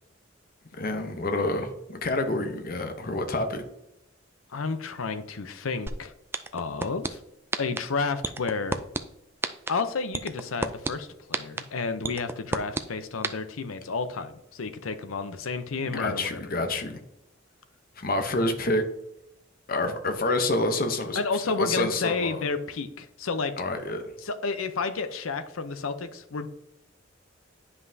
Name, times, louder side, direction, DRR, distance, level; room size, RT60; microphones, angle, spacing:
voice 1, 0.8-3.6 15.9-17.0 18.0-18.8 19.7-22.4 23.6-24.0, left 2 dB, 45° left, 6 dB, 0.8 m, -28 dB
voice 2, 4.5-6.1 6.5-7.2 7.6-8.8 9.7-16.4 21.1-23.5 24.2-26.5, left 4 dB, 85° left, 10 dB, 0.7 m, -31 dB
sound 1, 5.9-6.0 6.3-7.1 7.5-7.8 8.2-9.0 9.4-9.7 10.1-10.9 11.3-11.6 12.0-12.8 13.2-13.3, right 3 dB, 10° right, 0.3 m, -27 dB
9.8 x 5.5 x 2.7 m, 0.85 s
head